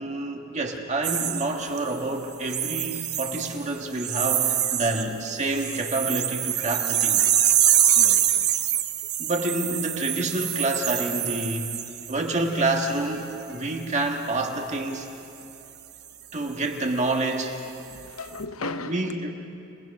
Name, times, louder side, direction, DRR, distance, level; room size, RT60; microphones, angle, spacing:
voice 1, 0.0-7.3 9.2-11.8 12.1-15.1 16.3-17.6 18.9-19.3, right 2 dB, 35° right, 2 dB, 1.6 m, -28 dB
sound 1, 1.0-2.0 2.5-3.6 4.0-5.0 5.3-12.2 12.7-13.0, right 11 dB, 50° right, 1.0 m, -25 dB
voice 2, 7.9-8.5 10.0-10.1 16.4-16.5 17.8-19.3, left 3 dB, 90° left, 9 dB, 0.9 m, -37 dB
28.5 x 19.5 x 5.4 m, 2.8 s
head